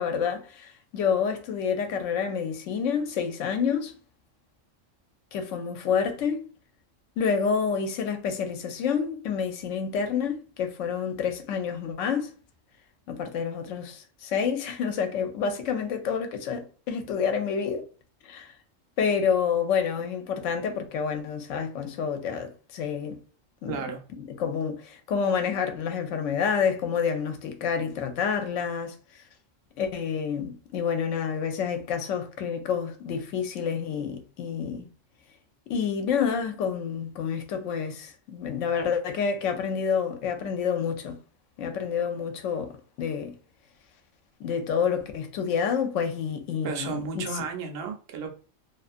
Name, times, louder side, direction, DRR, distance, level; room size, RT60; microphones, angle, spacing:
voice 1, 0.0-3.9 5.3-6.5 7.2-12.3 13.1-17.8 18.2-18.5 19.0-23.2 23.6-23.9 24.1-29.2 29.8-34.9 35.7-41.2 41.6-43.3 44.4-47.3, left 6 dB, 75° left, 0.9 m, -28 dB
voice 2, 23.7-24.0 46.6-48.3, right 5 dB, 60° right, 0.8 m, -33 dB
2.4 x 2.4 x 2.5 m
omnidirectional pair, 1.3 m